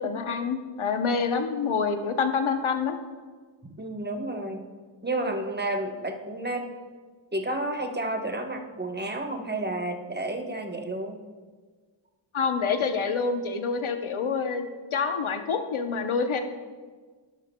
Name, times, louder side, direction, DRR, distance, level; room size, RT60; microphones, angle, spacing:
voice 1, 0.0-3.0 12.3-16.4, left 5 dB, 75° left, 7 dB, 0.9 m, -27 dB
voice 2, 3.8-4.6 5.0-6.7 7.3-11.2, right 1 dB, 20° right, 4 dB, 0.9 m, -31 dB
11.5 x 11.0 x 2.2 m, 1.5 s
wide cardioid pair, 55°, 49 cm